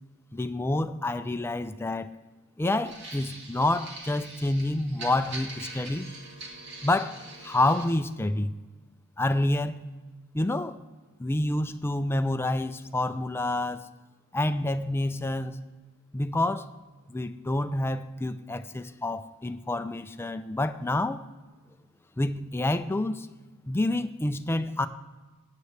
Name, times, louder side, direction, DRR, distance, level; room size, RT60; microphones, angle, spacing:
voice 1, 0.3-2.1 2.6-6.1 6.8-8.5 9.2-9.8 10.3-10.8 11.2-13.8 14.3-15.6 16.1-16.7 17.1-21.2 22.2-23.3 23.7-24.9, left 2 dB, 10° left, 10 dB, 0.4 m, -28 dB
sound 1, 2.8-7.9, right 2 dB, 55° right, 2.1 m, -43 dB
16.0 x 9.3 x 3.3 m, 1.3 s
head